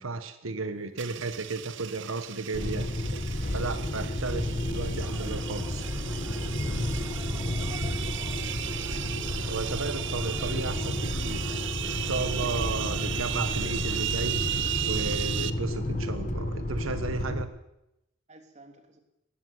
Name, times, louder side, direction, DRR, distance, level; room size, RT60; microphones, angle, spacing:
voice 1, 0.0-3.2 3.5-5.8 9.5-11.4 12.0-14.4 14.8-17.5, right 3 dB, 90° right, 9 dB, 1.4 m, -34 dB
sound 1, 1.0-15.5, right 12 dB, 60° right, 0.9 m, -35 dB
sound 2, 2.5-17.4, left 1 dB, 40° left, 1.5 m, -32 dB
sound 3, 5.0-14.0, right 1 dB, 10° right, 2.9 m, -48 dB
voice 2, 7.3-8.8 12.4-12.7 18.3-19.0, right 2 dB, 35° right, 4 dB, 3.3 m, -49 dB
19.0 x 14.0 x 9.8 m, 0.88 s
head